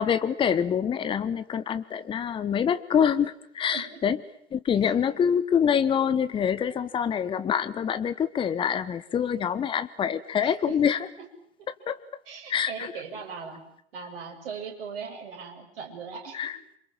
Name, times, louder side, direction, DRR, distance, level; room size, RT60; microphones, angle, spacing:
voice 1, 0.0-4.2 4.5-11.0 11.7-12.0 12.5-12.9 16.3-16.6, left 8 dB, 15° left, 14 dB, 1.1 m, -25 dB
voice 2, 3.7-4.0 4.8-4.9 10.4-11.0 12.3-13.6 13.9-16.5, right 6 dB, 55° right, 2 dB, 7.4 m, -39 dB
28.0 x 26.0 x 7.7 m, 0.69 s
figure-of-eight pair, 100°, 34 cm